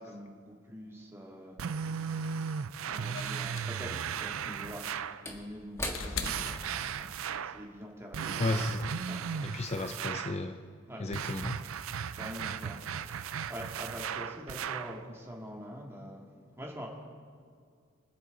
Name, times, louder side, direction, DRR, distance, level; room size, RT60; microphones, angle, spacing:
voice 1, 0.0-6.7 7.0-8.8 9.0-9.6 10.9-11.0 11.8-16.3 16.6-16.9, equal, 10° right, -1 dB, 2.0 m, -45 dB
sound 1, 1.6-5.2 6.2-7.6 8.1-10.4 11.1-15.0, right 7 dB, 75° right, 0.5 m, -36 dB
sound 2, 3.1-7.4 8.6-8.7, left 5 dB, 65° left, 0.9 m, -42 dB
Slam / Wood, 5.2-9.0 9.4-9.5, left 1 dB, 15° left, 1.7 m, -44 dB
voice 2, 8.4-8.9 9.4-10.6 11.0-11.6, left 2 dB, 30° left, 7 dB, 0.5 m, -33 dB
24.5 x 9.7 x 4.0 m, 2.1 s
head